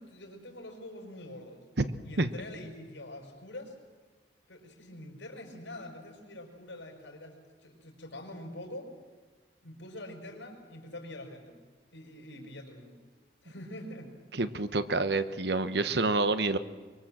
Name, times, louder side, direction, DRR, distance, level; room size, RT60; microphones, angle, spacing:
voice 1, 0.0-1.6 2.0-3.7 4.5-7.4 7.6-8.9 9.6-11.6 11.9-13.0 13.4-14.1, left 1 dB, 85° left, 3 dB, 5.3 m, -45 dB
voice 2, 14.3-16.6, right 3 dB, 65° right, 11 dB, 1.1 m, -28 dB
24.5 x 24.0 x 7.5 m, 1.5 s
head